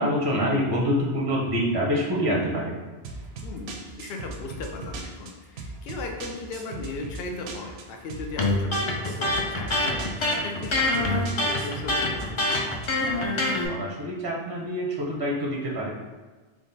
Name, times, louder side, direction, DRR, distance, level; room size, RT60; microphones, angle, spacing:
voice 1, 0.0-2.7 13.7-15.9, equal, 30° right, -3 dB, 0.5 m, -26 dB
sound 1, 3.0-13.1, right 3 dB, 75° right, 0.8 m, -38 dB
voice 2, 3.4-12.4, left 3 dB, 70° left, 3 dB, 0.8 m, -37 dB
Electric guitar, 8.4-13.7, left 2 dB, 45° left, 0.4 m, -25 dB
3.7 x 2.4 x 3.9 m, 1.3 s
omnidirectional pair, 1.1 m